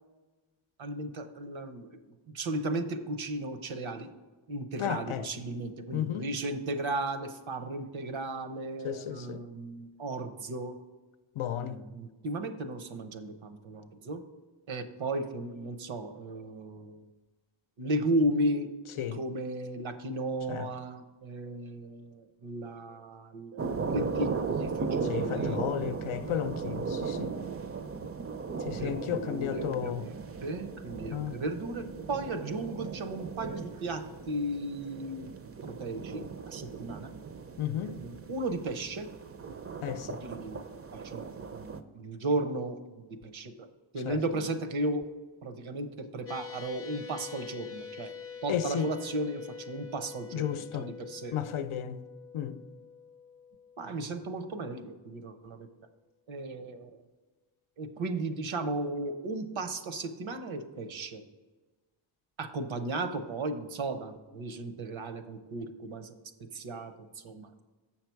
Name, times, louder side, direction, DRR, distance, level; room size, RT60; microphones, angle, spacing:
voice 1, 0.8-2.0 2.3-4.1 4.5-10.8 11.6-14.2 14.7-17.0 17.8-18.7 19.1-24.3 24.6-25.6 28.7-35.3 35.6-37.1 37.8-39.1 40.2-40.6 40.9-43.7 43.9-45.0 45.4-48.1 48.4-51.5 53.8-55.7 56.3-57.0 57.8-61.2 62.4-66.1 66.5-67.6, right 2 dB, 75° right, 0.9 m, -35 dB
voice 2, 4.8-5.3 5.9-6.3 8.8-9.4 11.4-11.8 19.0-19.2 20.5-20.7 25.1-27.3 28.6-30.1 31.1-31.3 37.6-38.0 39.8-40.2 44.1-44.2 48.5-48.9 50.3-50.9 51.3-52.0 52.3-52.6, left 10 dB, 90° left, 0.6 m, -33 dB
sound 1, 23.6-41.8, right 5 dB, 30° right, 0.4 m, -37 dB
sound 2, 46.3-54.9, left 7 dB, 30° left, 0.6 m, -46 dB
7.6 x 5.8 x 4.6 m
wide cardioid pair, 120°, 48 cm